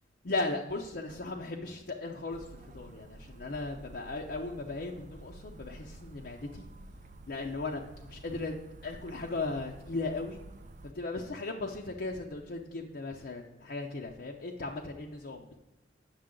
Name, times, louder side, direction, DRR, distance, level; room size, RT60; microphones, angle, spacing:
voice 1, 0.2-2.4 2.7-6.7 7.3-8.6 8.8-10.4 10.9-15.6, left 3 dB, 55° left, 0 dB, 0.6 m, -37 dB
sound 1, 2.3-10.9, right 2 dB, 40° right, 0.4 m, -51 dB
8.8 x 6.7 x 3.7 m, 1.0 s
head